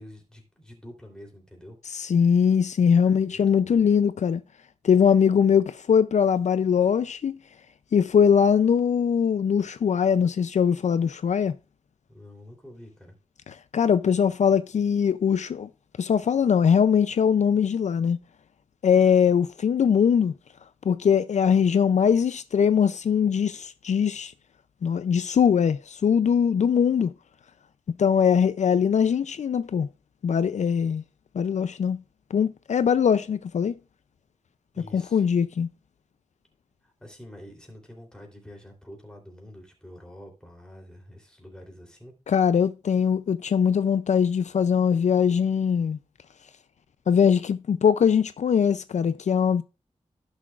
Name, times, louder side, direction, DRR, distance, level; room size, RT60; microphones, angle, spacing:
voice 1, 0.0-1.8 2.9-3.8 12.1-13.1 34.7-35.3 36.8-42.1, left 1 dB, 5° left, 3.2 m, -47 dB
voice 2, 1.9-4.4 4.8-7.4 7.9-11.6 13.7-15.7 16.0-18.2 18.8-20.3 20.8-24.3 24.8-27.1 28.0-29.9 30.2-31.0 31.3-32.0 32.3-33.7 34.9-35.7 42.3-46.0 47.1-49.6, left 7 dB, 70° left, 0.4 m, -21 dB
15.5 x 6.2 x 2.4 m
wide cardioid pair, 120°, 12 cm